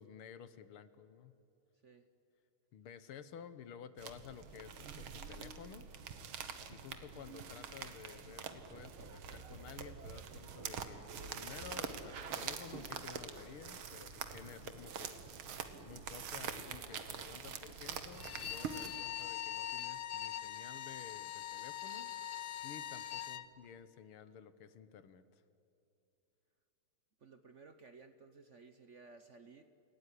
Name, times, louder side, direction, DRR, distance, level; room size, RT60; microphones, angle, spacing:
voice 1, 0.0-1.3 2.7-5.9 6.7-15.2 15.8-22.1 22.6-25.4, left 8 dB, 90° left, 13 dB, 2.0 m, -53 dB
sound 1, 4.0-19.0, right 6 dB, 75° right, 2.2 m, -45 dB
Bowed string instrument, 18.1-23.5, left 11 dB, 65° left, 1.2 m, -42 dB
voice 2, 27.2-29.6, right 4 dB, 50° right, 9 dB, 0.9 m, -57 dB
29.0 x 17.5 x 10.0 m, 2.8 s
omnidirectional pair, 2.3 m